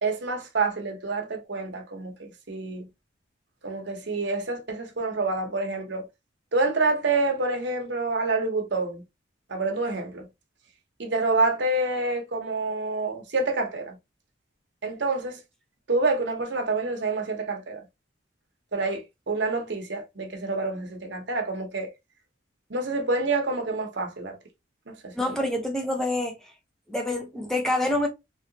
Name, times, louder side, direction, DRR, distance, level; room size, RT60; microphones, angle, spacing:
voice 1, 0.0-2.9 3.6-6.0 6.5-9.0 9.5-10.2 11.0-14.0 14.8-15.4 15.9-17.8 18.7-21.9 22.7-24.4 25.0-25.4, right 3 dB, 65° right, 0.9 m, -27 dB
voice 2, 25.1-26.4 26.9-28.1, left 1 dB, 5° left, 0.8 m, -26 dB
3.1 x 2.8 x 2.7 m
head